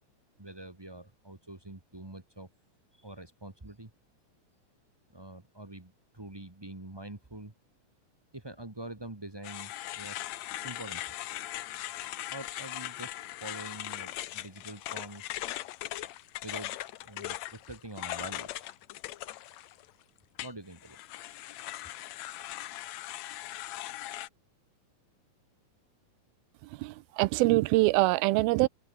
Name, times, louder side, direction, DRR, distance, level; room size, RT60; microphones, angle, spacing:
voice 1, 0.4-2.5 2.9-3.9 5.1-7.5 8.3-11.4 12.3-15.7 16.4-16.7 17.0-18.7 20.4-21.0 21.3-21.4, right 1 dB, 20° right, 0.6 m, -45 dB
sound 1, 9.4-19.9 20.4-24.3, left 15 dB, 75° left, 1.6 m, -39 dB
voice 2, 26.8-28.7, right 21 dB, 90° right, 2.5 m, -24 dB
open air
omnidirectional pair, 4.2 m